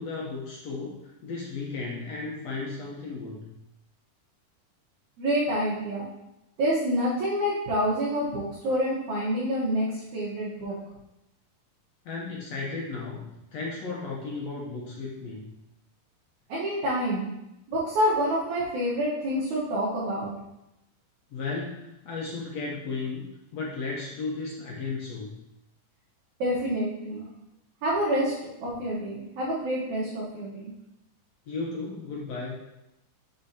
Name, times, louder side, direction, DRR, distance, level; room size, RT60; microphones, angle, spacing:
voice 1, 0.0-3.5 12.0-13.2 13.5-15.5 21.3-25.4 31.5-32.6, left 3 dB, 70° left, -4 dB, 1.6 m, -34 dB
voice 2, 5.2-6.1 6.6-10.7 16.5-17.3 17.7-20.3 26.4-27.2 27.8-28.3 28.6-30.7, equal, 60° right, -9 dB, 2.5 m, -27 dB
6.9 x 5.7 x 2.8 m, 0.88 s
omnidirectional pair, 4.1 m